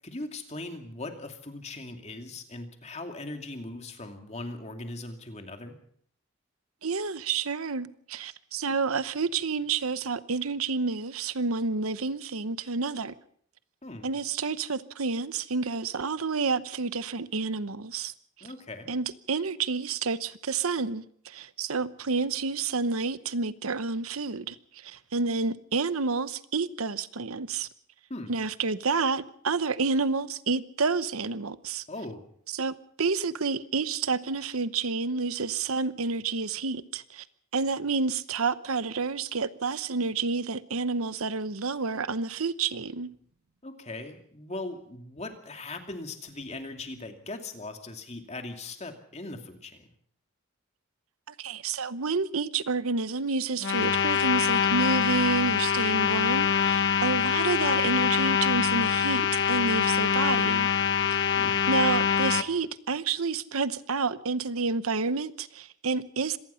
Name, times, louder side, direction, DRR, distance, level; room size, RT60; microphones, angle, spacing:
voice 1, 0.0-5.8 13.8-14.1 18.4-18.9 28.1-28.3 31.9-32.2 43.6-49.9 61.4-61.6, left 2 dB, 30° left, 2.5 m, -39 dB
voice 2, 6.8-13.1 14.0-18.1 18.9-27.7 28.3-31.9 32.5-37.2 37.5-43.1 51.3-60.7 61.1-61.3 61.7-66.4, right 4 dB, 80° right, 0.9 m, -29 dB
sound 1, 53.6-62.4, left 7 dB, 55° left, 1.1 m, -24 dB
25.5 x 18.5 x 5.7 m
head